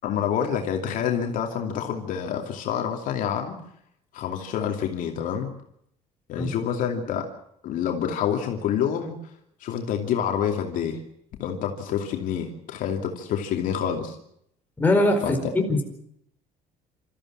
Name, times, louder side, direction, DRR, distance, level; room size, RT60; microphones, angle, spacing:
voice 1, 0.0-3.6 4.1-5.5 6.3-7.3 7.6-9.2 9.6-11.0 11.4-14.2 15.2-15.5, left 8 dB, 65° left, 3 dB, 2.6 m, -27 dB
voice 2, 14.8-15.8, left 1 dB, 10° left, 2 dB, 4.6 m, -22 dB
27.0 x 14.5 x 7.6 m, 0.72 s
cardioid pair, 120°, 15 cm